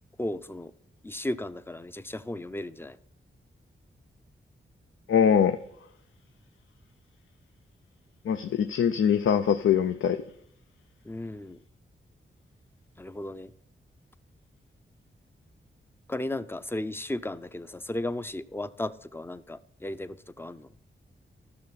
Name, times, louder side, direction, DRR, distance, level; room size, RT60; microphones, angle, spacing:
voice 1, 0.2-0.7 1.0-3.0 11.1-11.6 13.0-13.5 16.1-20.7, left 1 dB, 10° left, 0.4 m, -35 dB
voice 2, 5.1-5.6 8.2-10.2, left 8 dB, 90° left, 0.5 m, -23 dB
13.5 x 6.5 x 4.1 m
wide cardioid pair, 125°, 20 cm